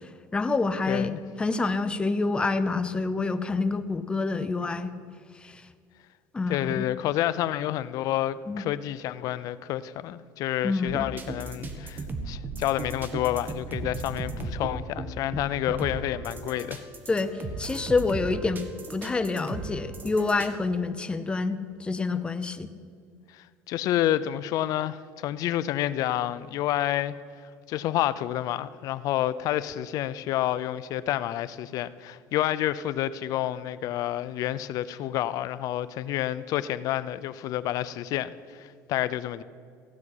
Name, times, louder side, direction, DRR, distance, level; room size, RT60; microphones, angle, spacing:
voice 1, 0.3-1.1 1.4-4.9 5.4-5.6 6.3-6.9 8.5-8.6 10.6-11.1 17.1-18.6 18.9-22.7, left 3 dB, 15° left, 10 dB, 0.7 m, -27 dB
voice 2, 0.9-1.2 6.5-16.8 23.3-27.2 27.4-39.4, left 13 dB, 60° left, 16 dB, 0.5 m, -29 dB
sound 1, 10.9-20.5, right 3 dB, 30° right, 1.4 m, -36 dB
15.5 x 6.0 x 9.7 m, 2.2 s
cardioid pair, 135°, 7 cm